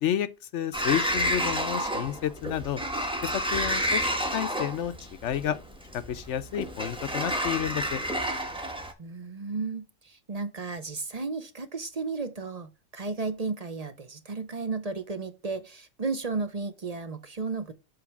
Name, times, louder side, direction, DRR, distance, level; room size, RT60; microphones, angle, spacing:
voice 1, 0.0-2.8 3.2-4.9 5.2-5.6 5.9-8.0, left 10 dB, 70° left, 1.0 m, -30 dB
Sliding door, 0.7-8.9, equal, 5° right, 1.2 m, -30 dB
voice 2, 9.0-17.7, right 4 dB, 35° right, 0.8 m, -34 dB
7.8 x 3.2 x 6.0 m
omnidirectional pair, 1.3 m